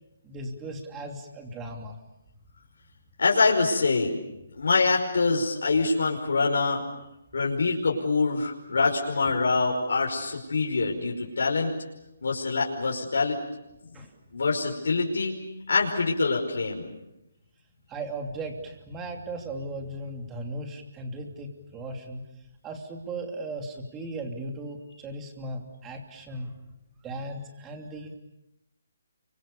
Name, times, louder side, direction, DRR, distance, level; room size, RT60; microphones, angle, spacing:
voice 1, 0.2-2.0 9.2-9.3 13.9-14.1 17.9-22.2 22.6-26.5 27.0-28.2, right 2 dB, 10° right, 3 dB, 2.9 m, -37 dB
voice 2, 3.2-4.2 4.5-6.8 7.3-11.7 12.2-13.4 13.9-14.0 14.3-15.4 15.7-16.9, left 4 dB, 75° left, -1 dB, 5.4 m, -25 dB
30.0 x 25.0 x 7.1 m, 0.90 s
hypercardioid pair, 170°, 0 cm